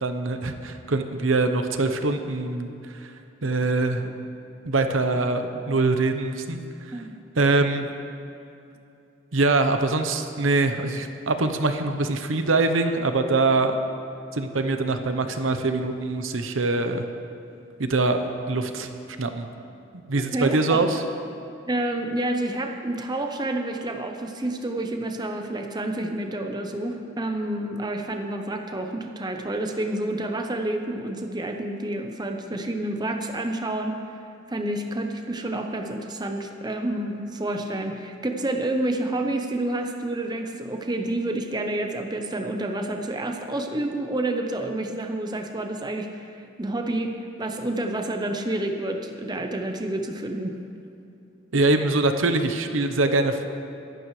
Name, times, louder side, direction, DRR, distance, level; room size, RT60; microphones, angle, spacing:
voice 1, 0.0-3.0 3.4-4.1 4.6-6.6 7.4-7.9 9.3-13.8 14.3-17.0 17.8-18.2 18.5-18.9 19.2-19.5 20.1-21.0 51.5-53.5, right 3 dB, 85° right, 7 dB, 0.9 m, -23 dB
voice 2, 20.1-20.8 21.7-34.0 34.5-50.5, right 1 dB, 20° right, 4 dB, 0.8 m, -29 dB
23.0 x 11.5 x 3.2 m, 2.7 s
head